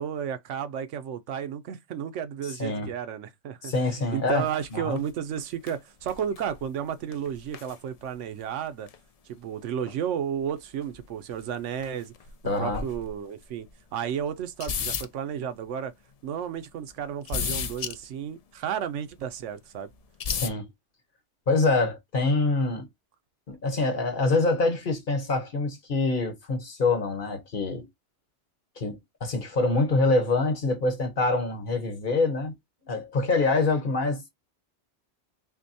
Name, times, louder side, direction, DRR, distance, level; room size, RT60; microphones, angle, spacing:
voice 1, 0.0-3.7 4.1-8.9 9.3-12.1 12.6-13.7 13.9-15.9 16.2-19.9, right 8 dB, 85° right, 1.0 m, -32 dB
voice 2, 2.4-2.9 3.6-5.0 12.4-12.8 20.3-20.7 21.5-22.9 23.5-27.9 28.8-32.5 32.8-34.3, left 3 dB, 50° left, 1.1 m, -25 dB
sound 1, 4.4-4.7 5.0-5.1 5.4-5.5 5.7-5.8 6.0-6.6 7.1-7.7 8.1-8.2 8.9-9.0 9.9-10.0 10.8-11.5 11.7-12.3 12.6-13.1 13.7-13.8 14.4-15.1 17.3-18.0 19.2-19.3 20.2-20.5, left 6 dB, 65° left, 0.3 m, -32 dB
6.0 x 2.2 x 2.7 m
omnidirectional pair, 1.2 m